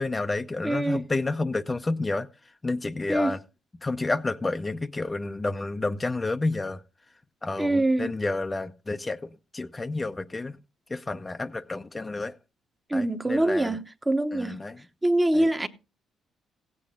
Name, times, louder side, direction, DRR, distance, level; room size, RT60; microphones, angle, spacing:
voice 1, 0.0-2.3 2.6-3.4 3.8-6.8 7.4-10.6 10.9-12.4 12.9-13.8 14.3-14.8 15.3-15.5, left 2 dB, 20° left, 0.6 m, -30 dB
voice 2, 0.6-1.0 3.1-3.3 7.6-8.1 12.9-13.8 14.1-14.6 15.0-15.7, right 1 dB, 15° right, 0.9 m, -24 dB
16.0 x 8.5 x 3.6 m
cardioid pair, 90°, 0 cm